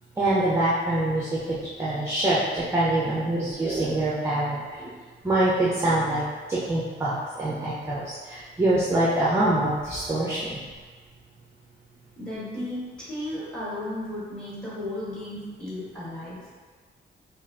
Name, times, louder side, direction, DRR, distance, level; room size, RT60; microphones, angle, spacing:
voice 1, 0.2-4.9 5.2-6.2 6.5-10.6, right 1 dB, 15° right, -7 dB, 0.5 m, -25 dB
voice 2, 12.2-16.5, left 1 dB, 5° left, -8 dB, 1.5 m, -34 dB
5.2 x 2.4 x 2.8 m, 1.5 s
wide cardioid pair, 145°, 20 cm